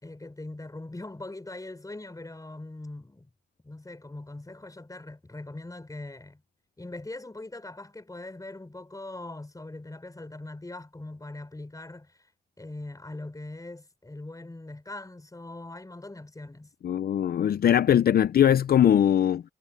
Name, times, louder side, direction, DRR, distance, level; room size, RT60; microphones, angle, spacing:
voice 1, 0.0-3.3 3.6-6.4 6.8-12.2 12.6-16.7, left 2 dB, 20° left, 4.8 m, -41 dB
voice 2, 16.8-19.4, left 10 dB, 60° left, 0.6 m, -21 dB
supercardioid pair, 60°, 18 cm